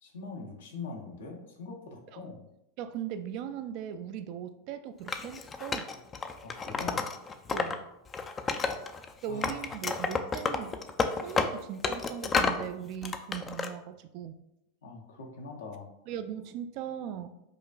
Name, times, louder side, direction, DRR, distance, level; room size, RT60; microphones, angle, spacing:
voice 1, 0.0-2.4 6.4-7.1 9.3-9.8 11.3-11.5 14.8-15.9, left 3 dB, 80° left, 1 dB, 0.7 m, -42 dB
voice 2, 2.8-5.9 7.5-7.8 9.2-10.8 11.1-14.4 16.1-17.3, right 9 dB, 55° right, 9 dB, 0.3 m, -39 dB
Wood, 5.1-7.8 8.1-9.1 9.4-12.6 13.0-13.7, left 4 dB, 25° left, 0.3 m, -31 dB
4.8 x 2.4 x 2.3 m, 0.85 s
hypercardioid pair, 100°, 0 cm